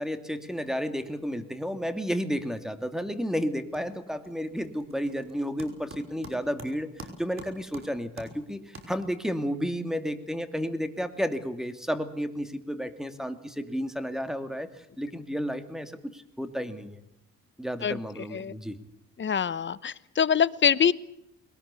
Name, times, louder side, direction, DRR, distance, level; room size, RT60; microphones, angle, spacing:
voice 1, 0.0-17.0 17.6-18.8, equal, ahead, 10 dB, 2.7 m, -32 dB
sound 1, 3.0-3.2 3.5-9.4, right 2 dB, 45° right, 5.7 m, -48 dB
voice 2, 19.2-20.9, left 7 dB, 40° left, 17 dB, 1.0 m, -24 dB
22.0 x 19.5 x 8.4 m, 0.80 s
cardioid pair, 90°, 30 cm